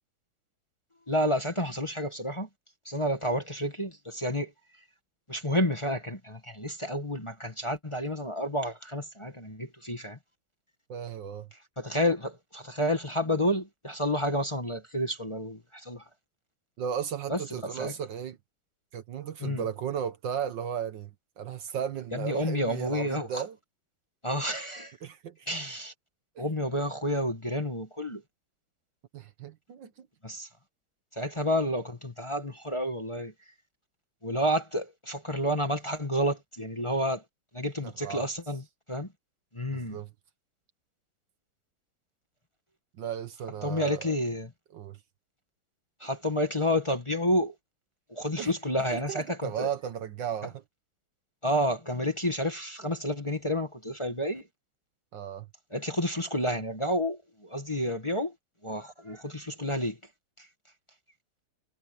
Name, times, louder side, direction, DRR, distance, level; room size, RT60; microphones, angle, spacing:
voice 1, 1.1-2.5 2.8-4.5 5.3-10.2 11.8-16.0 17.3-17.9 19.4-19.6 22.1-23.4 24.2-24.9 25.5-25.9 26.4-28.2 30.2-30.5 31.1-33.3 34.2-37.2 37.5-39.1 39.5-40.0 43.6-44.5 46.0-47.5 48.1-49.7 51.4-54.5 55.7-58.3 58.6-60.0 60.4-60.5, equal, 15° left, 1.5 m, -30 dB
voice 2, 10.9-11.5 16.8-18.4 18.9-23.5 25.0-25.4 26.3-26.5 29.1-30.1 38.0-38.2 39.7-40.1 43.0-44.1 44.7-45.0 48.4-48.5 48.9-50.5 55.1-55.5, right 8 dB, 65° right, 1.6 m, -35 dB
omnidirectional pair, 2.3 m